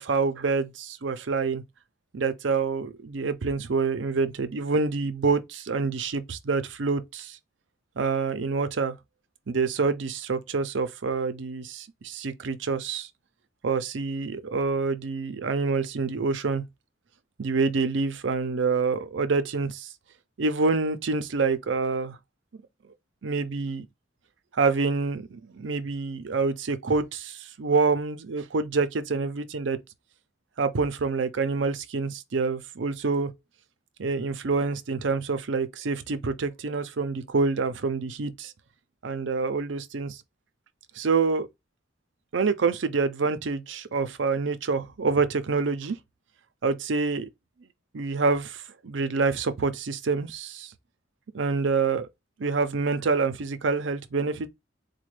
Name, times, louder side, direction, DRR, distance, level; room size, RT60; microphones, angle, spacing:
voice 1, 0.0-1.6 2.1-7.4 8.0-8.9 9.5-13.1 13.6-16.6 17.4-19.9 20.4-22.2 23.2-23.9 24.5-29.8 30.6-33.3 34.0-38.5 39.0-40.2 41.0-41.5 42.3-46.0 46.6-47.3 47.9-50.7 51.3-52.1 52.4-54.5, right 4 dB, 70° right, 0.6 m, -27 dB
4.2 x 2.2 x 3.1 m
head